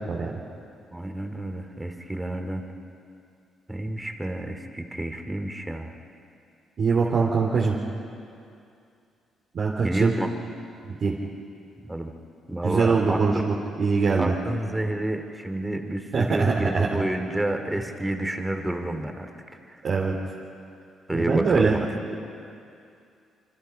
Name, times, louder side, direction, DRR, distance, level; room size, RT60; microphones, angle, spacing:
voice 1, 0.9-2.6 3.7-5.9 9.8-10.3 11.8-12.1 12.5-13.2 14.2-19.3 19.7-19.8 21.1-21.9, right 1 dB, 10° right, 5 dB, 2.6 m, -29 dB
voice 2, 6.8-7.7 9.5-10.1 11.0-11.1 12.6-14.3 16.1-16.9 19.8-20.1 21.1-21.8, right 4 dB, 50° right, -3 dB, 3.0 m, -22 dB
26.5 x 25.0 x 5.8 m, 2.5 s
cardioid pair, 90°, 0 cm